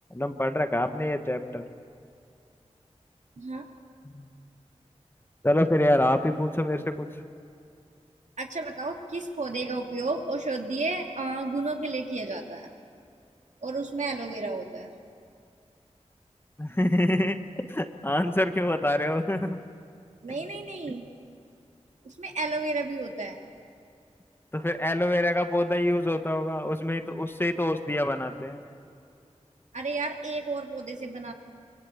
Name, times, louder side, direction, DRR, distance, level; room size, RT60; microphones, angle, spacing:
voice 1, 0.1-1.7 4.0-4.3 5.4-7.1 16.6-17.4 17.7-19.6 24.5-28.6, left 1 dB, 20° left, 7 dB, 1.4 m, -26 dB
voice 2, 8.4-12.7 13.6-14.9 20.2-21.1 22.0-23.4 29.7-31.3, right 3 dB, 85° right, 2 dB, 2.3 m, -32 dB
25.0 x 23.5 x 8.5 m, 2.4 s
wide cardioid pair, 70°, 12 cm